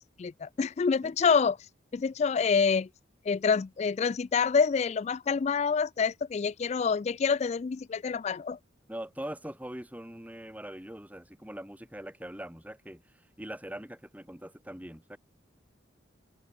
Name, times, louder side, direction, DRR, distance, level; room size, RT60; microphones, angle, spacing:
voice 1, 0.0-2.9 3.3-8.6, left 5 dB, 35° left, 0.3 m, -27 dB
voice 2, 8.9-13.0 13.4-15.2, right 1 dB, 10° right, 2.3 m, -42 dB
head